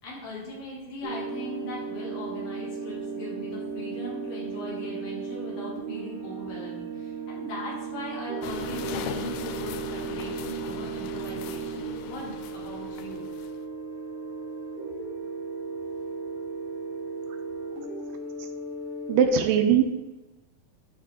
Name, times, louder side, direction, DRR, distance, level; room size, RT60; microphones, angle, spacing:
voice 1, 0.0-13.2, left 1 dB, 70° left, -6 dB, 4.1 m, -39 dB
sound 1, 1.0-19.3, right 5 dB, 50° right, 0.9 m, -35 dB
sound 2, 8.4-13.6, left 9 dB, 85° left, 2.3 m, -39 dB
voice 2, 18.1-18.5 19.1-19.8, right 7 dB, 80° right, 6 dB, 2.1 m, -22 dB
11.0 x 4.1 x 3.7 m, 1.1 s
omnidirectional pair, 4.1 m